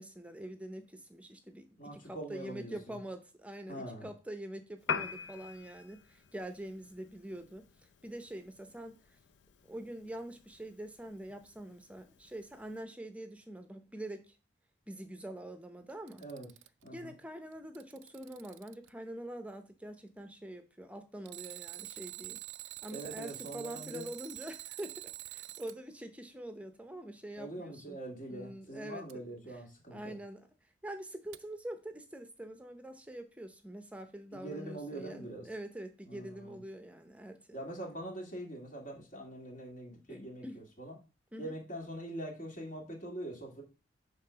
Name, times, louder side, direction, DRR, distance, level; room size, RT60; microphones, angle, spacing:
voice 1, 0.0-1.7 1.9-7.6 8.0-9.0 9.7-14.3 14.9-16.2 16.9-22.4 22.8-28.0 28.3-29.0 29.4-29.5 29.9-30.5 30.8-37.6 40.1-40.6 41.3-41.5, right 1 dB, 5° right, 0.7 m, -45 dB
voice 2, 1.8-3.0 3.7-4.1 16.2-16.5 16.8-17.1 22.9-24.1 27.4-30.2 34.3-35.5 36.1-36.6 37.5-41.0 41.4-43.6, right 1 dB, 45° left, 1.8 m, -43 dB
Piano, 4.8-12.8, left 6 dB, 80° left, 0.5 m, -45 dB
Alarm, 15.9-16.9 17.5-18.9 21.2-25.8 29.1-29.2 31.3-31.4, right 16 dB, 85° right, 0.3 m, -46 dB
5.8 x 3.7 x 5.6 m
head